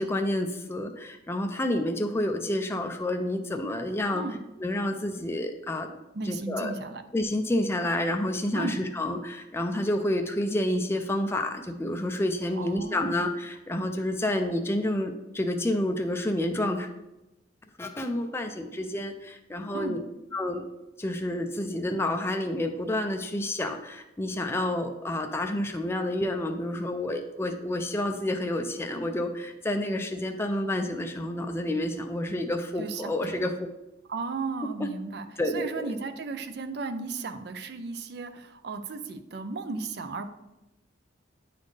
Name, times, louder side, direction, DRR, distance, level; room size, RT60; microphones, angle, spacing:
voice 1, 0.0-4.2 4.6-5.9 6.3-6.7 7.1-16.9 17.8-20.0 20.3-20.7 21.0-33.5 34.8-34.9 35.4-35.9, left 1 dB, 15° left, 5 dB, 0.4 m, -29 dB
voice 2, 4.1-4.4 6.1-7.0 8.5-8.9 12.6-13.2 19.7-20.0 32.8-33.5 34.1-35.3 35.5-40.3, right 3 dB, 60° right, 9 dB, 0.5 m, -35 dB
9.2 x 4.2 x 3.2 m, 0.95 s
head